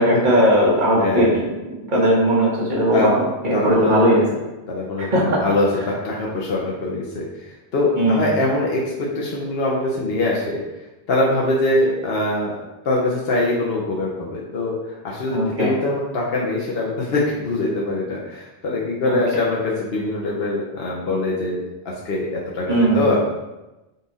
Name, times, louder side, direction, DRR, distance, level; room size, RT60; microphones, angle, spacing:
voice 1, 0.0-1.4 1.9-3.2 3.4-4.2 5.0-5.4 7.9-8.4 15.3-15.7 19.1-19.2 22.7-23.1, equal, 45° right, -4 dB, 1.3 m, -18 dB
voice 2, 0.9-1.3 2.9-3.1 3.5-3.9 4.7-5.1 5.4-7.2 7.7-10.6 11.1-12.6 12.8-23.2, left 2 dB, 60° left, -4 dB, 0.9 m, -23 dB
5.5 x 2.4 x 4.0 m, 1.0 s
omnidirectional pair, 1.2 m